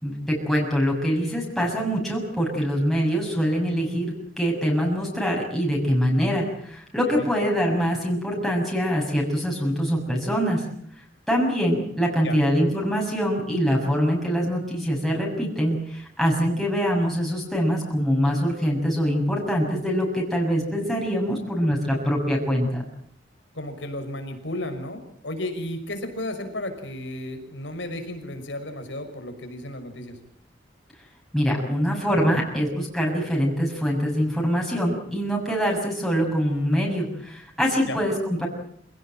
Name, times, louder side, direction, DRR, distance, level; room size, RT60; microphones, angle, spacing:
voice 1, 0.0-10.6 11.3-22.8 31.3-38.5, equal, ahead, -3 dB, 6.6 m, -24 dB
voice 2, 23.5-30.2 37.9-38.0, left 1 dB, 70° left, 7 dB, 5.7 m, -33 dB
27.5 x 17.5 x 9.0 m, 0.69 s
head